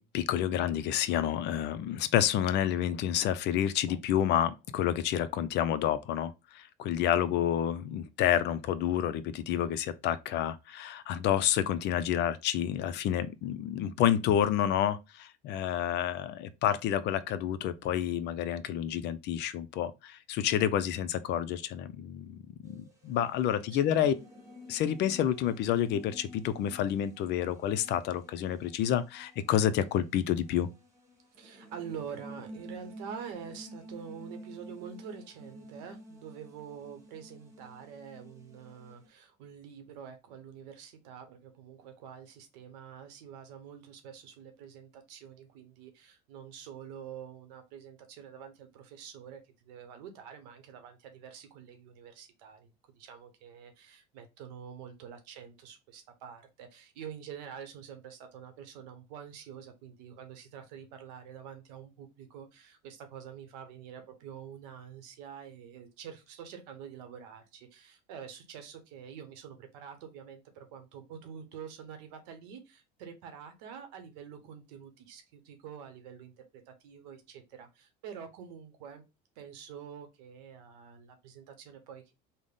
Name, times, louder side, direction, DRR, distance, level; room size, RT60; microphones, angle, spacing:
voice 1, 0.0-24.1 24.7-30.7, left 10 dB, 55° left, 0.4 m, -29 dB
sound 1, 22.6-39.1, equal, 15° right, 1.1 m, -51 dB
voice 2, 23.7-24.0 31.4-79.0 79.4-82.1, right 8 dB, 90° right, 0.9 m, -47 dB
3.4 x 2.1 x 3.8 m
supercardioid pair, 100°, 21 cm